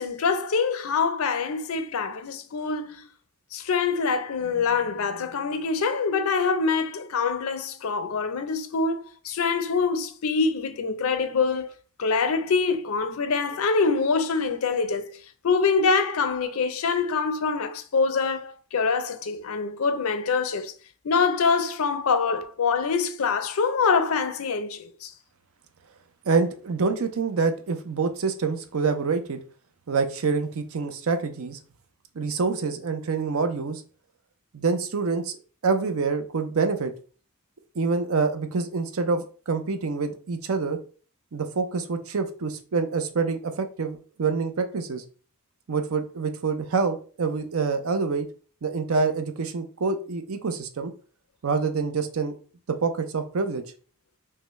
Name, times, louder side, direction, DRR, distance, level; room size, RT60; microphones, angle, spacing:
voice 1, 0.0-3.1 3.5-11.7 12.0-15.1 15.4-20.7 21.0-25.1, left 5 dB, 70° left, 0.5 m, -25 dB
voice 2, 26.3-29.4 29.9-31.6 32.2-33.8 34.5-35.4 35.6-36.9 37.7-40.8 41.3-45.0 45.7-48.3 48.6-50.9 51.4-52.3 52.7-53.6, right 4 dB, 70° right, 0.6 m, -26 dB
5.5 x 2.1 x 3.1 m
head